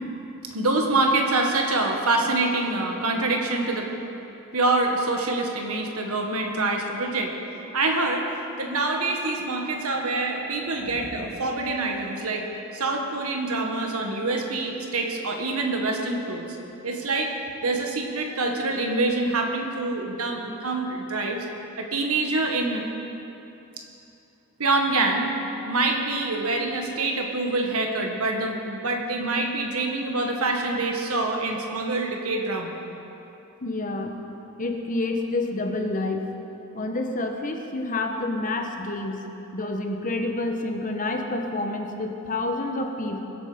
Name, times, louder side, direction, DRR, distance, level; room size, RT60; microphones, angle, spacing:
voice 1, 0.5-3.9 4.5-7.3 7.7-8.3 8.6-12.5 12.7-16.4 16.8-17.3 17.6-21.4 21.8-22.8 24.6-25.3 25.6-32.7, right 2 dB, 80° right, 2 dB, 1.7 m, -25 dB
voice 2, 33.6-34.2 34.6-36.2 36.7-39.2 39.5-43.3, left 2 dB, 35° left, 3 dB, 1.1 m, -28 dB
22.0 x 8.4 x 5.1 m, 2.9 s
head